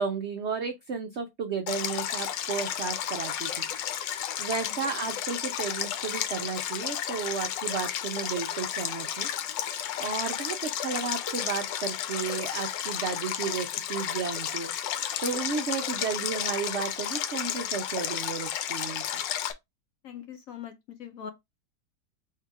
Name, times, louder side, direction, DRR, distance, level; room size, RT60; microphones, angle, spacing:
voice 1, 0.0-3.7 4.4-9.3 10.0-19.2, right 5 dB, 80° right, 0.6 m, -33 dB
Stream, 1.7-19.5, left 10 dB, 85° left, 1.3 m, -32 dB
voice 2, 20.0-21.3, left 8 dB, 65° left, 0.9 m, -41 dB
3.8 x 2.8 x 4.6 m
omnidirectional pair, 1.9 m